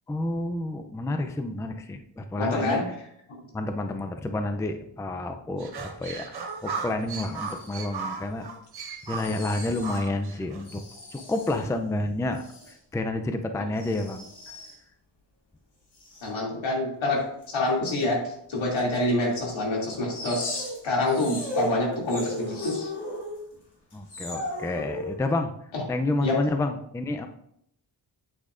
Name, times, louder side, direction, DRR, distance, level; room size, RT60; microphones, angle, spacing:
voice 1, 0.1-2.8 3.5-6.2 6.6-8.5 9.1-10.8 11.1-12.4 12.9-14.6 23.9-25.5 25.9-27.3, left 2 dB, 5° left, 6 dB, 0.4 m, -29 dB
voice 2, 2.4-2.9 16.2-22.9 25.7-25.8 26.2-26.4, left 2 dB, 80° left, -2 dB, 2.8 m, -27 dB
sound 1, 5.6-10.7, right 5 dB, 55° right, 1.1 m, -36 dB
sound 2, 7.2-7.8 9.0-10.0 10.6-11.7 12.3-12.8 13.8-14.8 15.9-16.3 17.4-17.5 18.8-18.9 19.3-19.4 20.1-23.6 23.9-25.2, left 1 dB, 60° left, 2.9 m, -37 dB
8.6 x 8.3 x 2.5 m, 0.72 s
wide cardioid pair, 125°, 46 cm